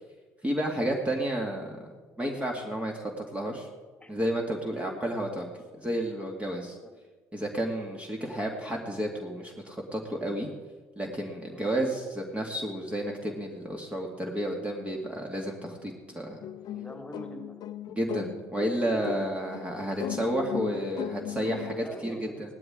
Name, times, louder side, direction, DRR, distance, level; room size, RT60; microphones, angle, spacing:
voice 1, 0.4-1.7 2.2-3.7 4.1-5.5 5.8-6.8 7.3-10.5 11.0-16.4 17.9-22.5, right 1 dB, 15° right, 1 dB, 2.2 m, -31 dB
voice 2, 4.6-5.0 6.8-6.9 11.5-11.7 16.7-17.6 18.8-19.3 21.7-22.5, left 1 dB, 10° left, 3 dB, 2.7 m, -44 dB
sound 1, 16.4-21.9, left 12 dB, 55° left, 0.5 m, -38 dB
18.0 x 12.5 x 3.8 m, 1.3 s
hypercardioid pair, 55°, 8 cm